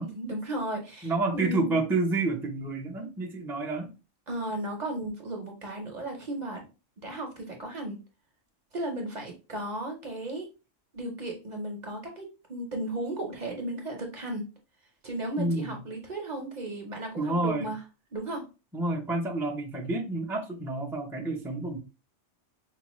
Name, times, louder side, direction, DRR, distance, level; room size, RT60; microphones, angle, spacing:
voice 1, 0.1-1.8 4.3-6.6 7.0-8.0 8.7-10.5 10.9-14.4 15.0-17.8 18.1-18.5, right 1 dB, 40° right, 0.8 m, -35 dB
voice 2, 1.0-3.9 15.4-15.8 17.2-17.7 18.7-21.8, right 2 dB, 5° right, 0.4 m, -29 dB
4.7 x 2.1 x 3.0 m
omnidirectional pair, 1.2 m